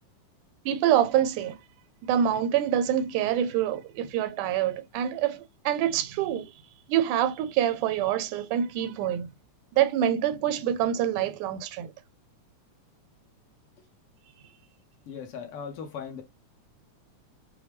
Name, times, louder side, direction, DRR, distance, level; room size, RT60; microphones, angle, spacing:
voice 1, 0.7-1.6 2.0-6.5 6.9-9.3 9.8-11.9, right 10 dB, 80° right, 2.0 m, -26 dB
voice 2, 15.1-16.2, left 6 dB, 70° left, 1.4 m, -38 dB
6.1 x 2.2 x 3.4 m
omnidirectional pair, 3.6 m